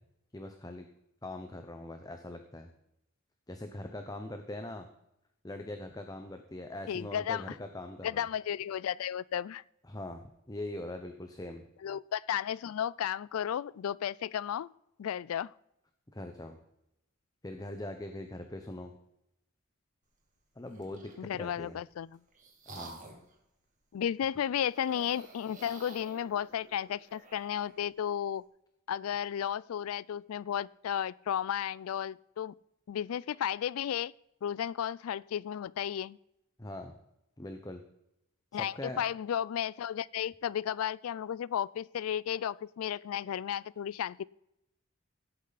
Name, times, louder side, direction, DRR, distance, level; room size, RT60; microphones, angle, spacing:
voice 1, 0.3-0.9 1.2-2.7 3.5-4.9 5.4-8.3 9.9-11.6 16.1-16.6 17.4-18.9 20.6-21.8 22.7-23.0 36.6-36.9 37.4-37.8 38.5-39.0, left 1 dB, 20° left, 6 dB, 0.8 m, -42 dB
voice 2, 6.9-7.5 8.0-9.6 11.8-14.7 15.0-15.5 21.2-22.2 23.9-28.4 28.9-32.5 32.9-34.1 34.4-36.2 38.5-44.2, left 9 dB, 90° left, 22 dB, 0.3 m, -33 dB
sound 1, 20.6-21.2 21.9-23.3 24.7-27.8, right 2 dB, 40° right, 2.4 m, -51 dB
17.0 x 8.5 x 4.1 m, 0.83 s
head